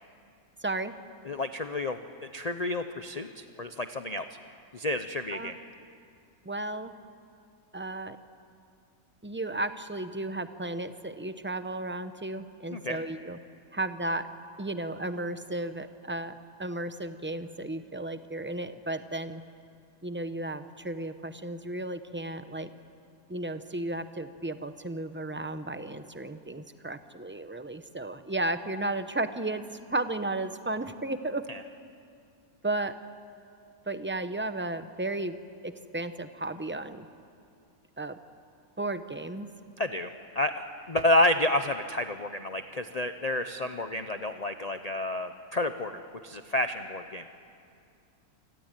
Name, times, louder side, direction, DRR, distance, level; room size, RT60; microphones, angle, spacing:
voice 1, 0.6-0.9 5.3-5.5 6.4-6.9 7.7-8.2 9.2-13.4 13.7-14.3 14.6-16.3 16.6-19.4 20.0-22.7 23.3-31.5 32.6-32.9 33.9-35.4 35.6-37.1 38.0-38.2 38.8-39.5, right 2 dB, 10° right, 10 dB, 0.6 m, -34 dB
voice 2, 1.2-4.4 4.7-5.5 12.7-13.0 31.5-31.6 39.8-47.4, left 1 dB, 35° left, 8 dB, 0.7 m, -30 dB
28.0 x 19.5 x 9.1 m, 2.4 s
omnidirectional pair, 1.5 m